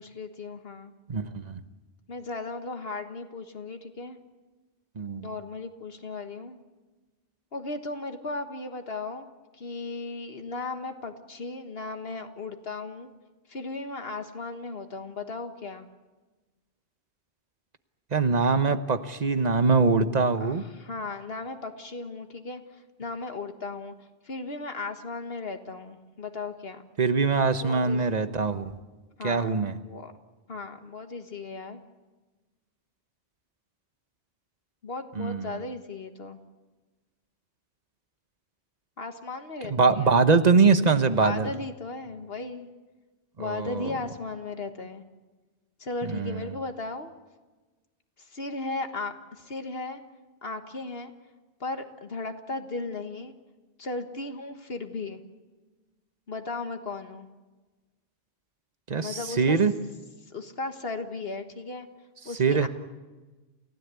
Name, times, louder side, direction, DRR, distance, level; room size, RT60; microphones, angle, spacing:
voice 1, 0.0-0.9 2.1-4.2 5.2-6.6 7.5-13.1 13.5-15.9 20.4-23.9 24.2-26.9 27.6-28.2 29.2-29.5 29.8-30.1 30.5-31.8 34.8-36.4 39.0-40.2 41.2-42.7 43.4-45.0 45.8-47.1 48.2-50.0 50.4-51.1 51.6-53.3 53.8-55.2 56.3-57.3 59.0-59.6 60.2-61.9 62.2-62.7, left 3 dB, 65° left, 7 dB, 1.7 m, -36 dB
voice 2, 1.1-1.6 5.0-5.3 18.1-20.6 27.0-28.7 29.2-29.8 35.1-35.6 39.7-41.5 43.4-43.9 46.1-46.4 58.9-59.7 62.4-62.7, right 4 dB, 40° right, 11 dB, 1.2 m, -23 dB
29.0 x 16.5 x 8.3 m, 1.2 s
omnidirectional pair, 1.1 m